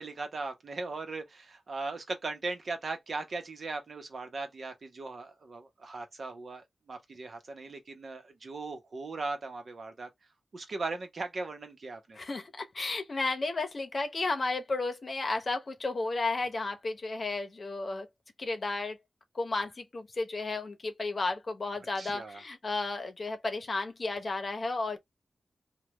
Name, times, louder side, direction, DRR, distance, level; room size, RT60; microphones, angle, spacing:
voice 1, 0.0-10.1 10.5-12.2 22.0-22.4, right 3 dB, 65° right, 0.9 m, -38 dB
voice 2, 12.2-18.1 18.4-19.0 19.3-25.0, left 3 dB, 50° left, 0.8 m, -33 dB
3.3 x 2.3 x 2.9 m
wide cardioid pair, 75°, 0 cm